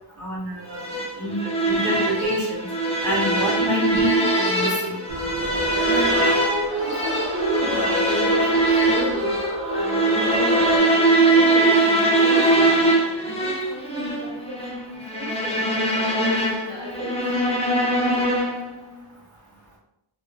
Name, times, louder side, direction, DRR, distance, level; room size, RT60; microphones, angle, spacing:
voice 1, 0.2-2.6 3.0-5.0, equal, 30° right, -10 dB, 0.8 m, -27 dB
sound 1, 0.7-18.7, right 2 dB, 15° left, 0.5 m, -22 dB
sound 2, 5.1-10.8, equal, 90° right, 0.7 m, -28 dB
voice 2, 5.8-6.3 6.8-9.3 9.7-17.2, equal, 60° right, -3 dB, 1.1 m, -33 dB
2.5 x 2.4 x 2.3 m, 0.85 s
wide cardioid pair, 65°, 50 cm